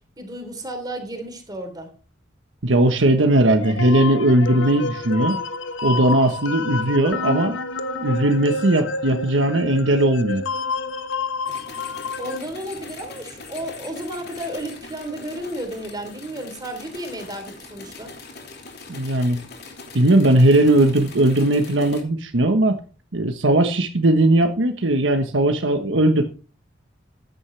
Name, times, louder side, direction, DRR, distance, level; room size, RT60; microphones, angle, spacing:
voice 1, 0.2-1.9 12.2-18.1, right 1 dB, 20° right, 5 dB, 3.6 m, -33 dB
voice 2, 2.6-5.4 5.8-7.6 8.0-10.4 18.9-19.4 19.9-22.8 23.1-26.2, right 1 dB, 75° right, 5 dB, 1.3 m, -18 dB
sound 1, 3.6-12.4, left 3 dB, 80° left, 1.1 m, -29 dB
sound 2, 11.5-22.0, left 3 dB, 55° left, 3.1 m, -41 dB
14.5 x 11.0 x 3.4 m, 0.36 s
head